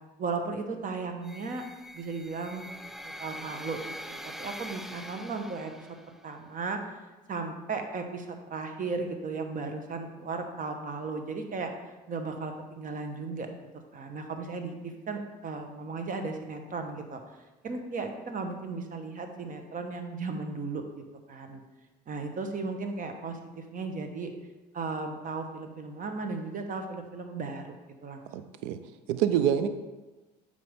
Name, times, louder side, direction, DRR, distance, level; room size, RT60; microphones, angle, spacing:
voice 1, 0.2-1.7 1.9-2.7 3.2-5.9 6.2-7.0 7.3-11.7 12.1-13.5 13.9-17.2 17.6-20.8 21.3-21.6 22.1-24.3 24.7-27.8 28.0-28.3, right 4 dB, 40° right, 6 dB, 1.1 m, -35 dB
sound 1, 1.2-6.3, equal, ahead, 0.4 m, -43 dB
voice 2, 28.3-28.8 29.1-29.7, right 9 dB, 70° right, 10 dB, 0.5 m, -26 dB
7.6 x 5.2 x 3.6 m, 1.1 s
hypercardioid pair, 65°, 21 cm